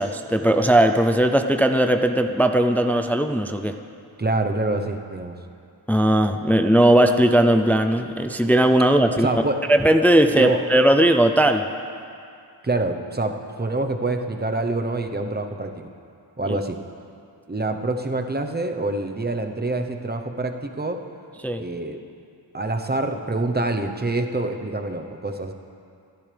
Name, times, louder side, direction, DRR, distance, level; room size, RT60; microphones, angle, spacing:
voice 1, 0.0-3.7 5.9-9.3 9.7-11.6 16.5-16.6 21.4-21.6, right 1 dB, 5° left, 6 dB, 0.5 m, -18 dB
voice 2, 4.2-5.4 9.1-9.6 10.3-10.6 12.6-15.9 16.4-16.8 17.5-21.0 21.6-22.0 22.5-25.5, right 2 dB, 20° right, 5 dB, 0.9 m, -26 dB
25.0 x 11.0 x 3.4 m, 2.4 s
wide cardioid pair, 90°, 46 cm